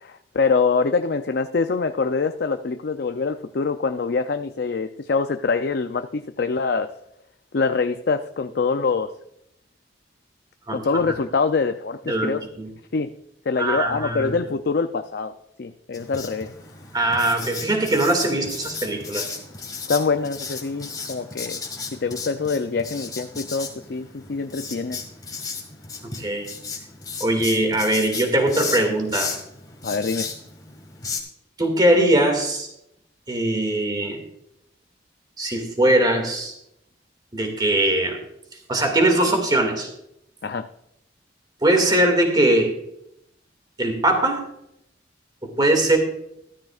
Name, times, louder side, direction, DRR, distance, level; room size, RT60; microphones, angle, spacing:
voice 1, 0.0-6.9 7.5-9.1 10.7-12.4 12.9-13.1 13.5-16.5 19.9-21.6 21.9-25.0 29.8-30.3 40.4-40.7, left 4 dB, 60° left, 8 dB, 0.5 m, -24 dB
voice 2, 10.7-11.0 12.1-12.7 13.6-14.3 16.9-19.4 26.0-26.5 27.2-29.3 31.6-32.7 33.3-34.2 35.4-36.5 37.3-38.2 38.7-39.9 41.6-42.7 43.8-44.4 45.4-46.0, right 1 dB, 25° right, 3 dB, 2.1 m, -21 dB
Writing, 15.9-31.2, left 4 dB, 20° left, 1.9 m, -35 dB
13.5 x 13.5 x 2.4 m, 0.78 s
head